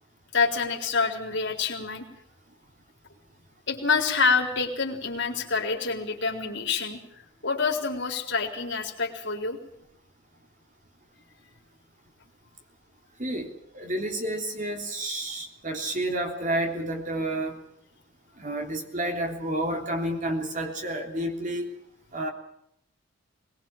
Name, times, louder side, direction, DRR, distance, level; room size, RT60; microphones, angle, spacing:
voice 1, 0.3-2.1 3.7-7.0 7.4-9.6, left 4 dB, 55° left, 3 dB, 3.9 m, -27 dB
voice 2, 13.7-17.6 18.4-21.7 22.1-22.3, right 1 dB, 35° right, 3 dB, 3.4 m, -30 dB
22.0 x 20.5 x 7.4 m, 0.73 s
head